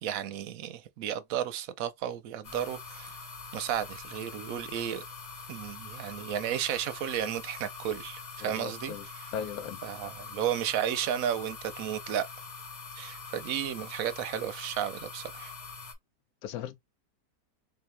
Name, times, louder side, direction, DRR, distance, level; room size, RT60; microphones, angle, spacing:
voice 1, 0.0-3.2 3.5-5.0 5.5-9.3 9.8-12.3 13.0-15.5, right 10 dB, 70° right, 0.9 m, -33 dB
sound 1, 2.4-15.9, left 4 dB, 40° left, 0.6 m, -44 dB
voice 2, 8.4-9.0 9.3-9.8 16.4-16.7, left 8 dB, 75° left, 1.1 m, -37 dB
3.6 x 2.7 x 3.3 m
omnidirectional pair, 1.7 m